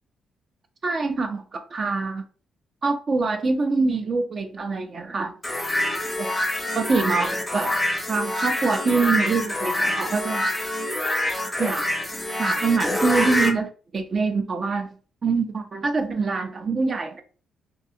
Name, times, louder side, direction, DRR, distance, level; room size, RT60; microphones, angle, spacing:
voice 1, 0.8-2.2 2.8-5.3 6.2-6.3 6.7-7.8 8.1-10.5 11.6-11.8 12.4-14.9 15.2-17.2, right 4 dB, 40° right, 0.4 m, -24 dB
sound 1, 5.4-13.5, left 1 dB, 15° left, 0.6 m, -26 dB
2.4 x 2.2 x 2.7 m
cardioid pair, 90°, 0 cm